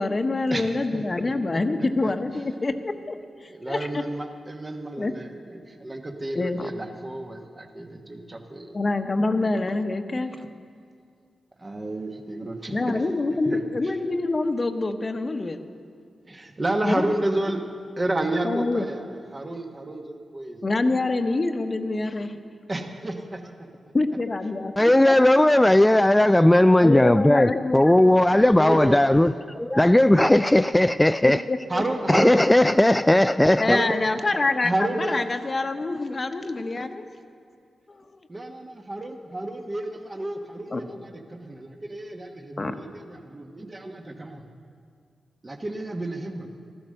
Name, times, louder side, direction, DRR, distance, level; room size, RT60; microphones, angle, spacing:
voice 1, 0.0-3.2 3.4-4.0 5.0-5.1 6.3-6.7 8.7-10.5 12.7-15.6 16.8-17.0 18.4-18.9 20.6-22.4 23.9-25.1 25.9-26.0 26.8-28.1 28.6-28.8 31.2-31.6 33.6-37.0 37.9-38.2 40.7-40.8 42.6-42.7, left 2 dB, 40° left, 1.0 m, -26 dB
voice 2, 0.9-1.3 2.0-2.1 3.5-8.8 9.4-9.5 11.6-13.0 13.4-14.0 16.3-17.7 18.0-21.4 22.7-23.9 28.5-29.0 31.7-32.3 33.6-33.9 34.6-35.3 38.3-44.5 45.4-46.5, right 1 dB, 30° right, 1.3 m, -31 dB
voice 3, 24.8-29.3 29.6-31.4 32.1-33.8, left 1 dB, 15° left, 0.3 m, -17 dB
14.0 x 12.0 x 6.5 m
cardioid pair, 55°, 0 cm